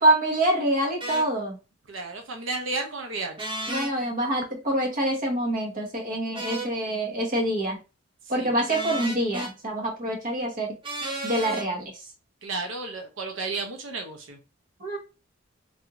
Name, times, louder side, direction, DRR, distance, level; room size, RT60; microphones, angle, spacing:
voice 1, 0.0-1.6 3.7-7.8 8.3-10.8 11.2-11.9 14.8-15.0, right 1 dB, 45° right, 0 dB, 1.0 m, -25 dB
sound 1, 1.0-1.3 3.4-3.9 6.3-6.7 8.7-9.5 10.8-11.7, right 1 dB, 25° right, 0.7 m, -33 dB
voice 2, 1.9-3.4 8.4-8.6 12.4-14.4, right 3 dB, 80° right, 4 dB, 0.6 m, -32 dB
3.4 x 2.5 x 2.8 m, 0.29 s
head